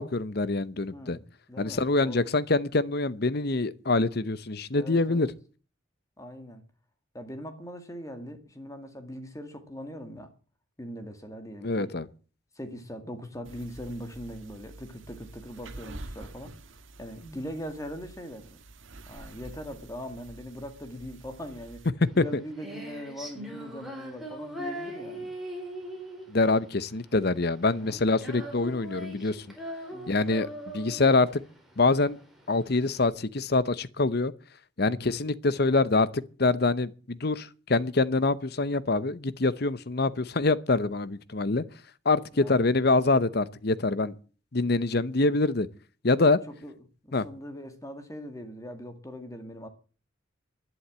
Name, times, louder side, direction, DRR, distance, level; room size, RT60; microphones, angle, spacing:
voice 1, 0.0-1.2 1.6-5.3 11.6-12.1 22.0-22.2 26.3-29.4 30.1-31.4 31.8-32.2 32.5-34.3 34.8-41.6 42.0-44.1 44.5-45.7 46.0-46.4 47.1-47.2, left 3 dB, 50° left, 0.8 m, -25 dB
voice 2, 0.9-2.3 4.7-5.3 6.2-6.6 7.1-10.3 10.8-11.9 12.5-16.5 17.0-18.6 19.1-21.8 22.1-25.3 27.8-28.1 29.9-30.2 34.9-35.2 42.3-42.7 46.1-46.7 47.0-49.7, equal, 15° left, 2.1 m, -41 dB
sound 1, 13.4-21.9, right 2 dB, 75° right, 1.6 m, -47 dB
Female singing, 22.1-33.0, equal, ahead, 4.2 m, -40 dB
11.5 x 11.0 x 8.7 m
head